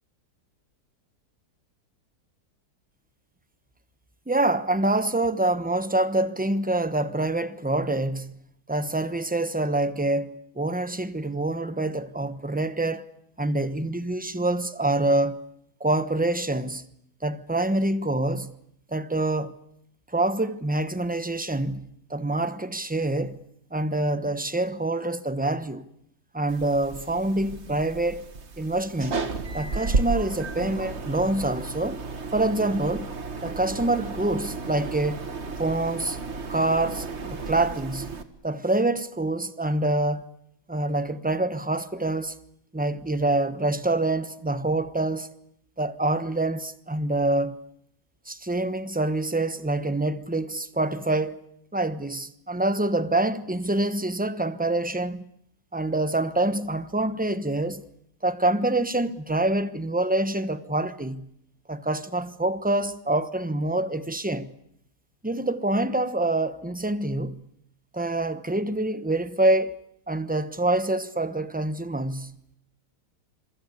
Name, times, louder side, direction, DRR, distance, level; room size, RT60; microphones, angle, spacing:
voice 1, 4.3-8.4 8.7-13.1 13.4-15.4 15.8-16.8 17.2-18.6 18.9-19.5 20.1-23.4 23.7-25.8 26.3-28.3 28.6-29.2 29.5-32.0 32.3-33.1 33.4-35.2 35.6-36.2 36.5-38.1 38.4-40.3 40.7-42.4 42.7-45.3 45.8-47.6 48.3-51.4 51.7-55.3 55.7-57.8 58.2-61.3 61.7-64.5 65.2-67.5 67.9-69.8 70.1-72.3, right 2 dB, 5° right, 0.8 m, -26 dB
sound 1, 26.5-38.2, right 4 dB, 40° right, 1.8 m, -33 dB
27.0 x 23.5 x 8.3 m
omnidirectional pair, 1.8 m